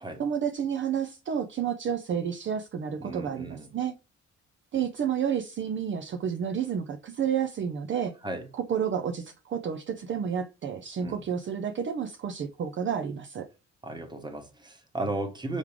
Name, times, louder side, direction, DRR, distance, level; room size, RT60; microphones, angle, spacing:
voice 1, 0.0-3.9 4.7-8.1 8.5-13.5, right 8 dB, 40° right, 0.5 m, -30 dB
voice 2, 3.0-3.7 8.2-8.4 11.0-11.2 13.8-15.6, right 2 dB, 15° right, 1.1 m, -35 dB
3.6 x 3.6 x 3.1 m
cardioid pair, 90°, 30 cm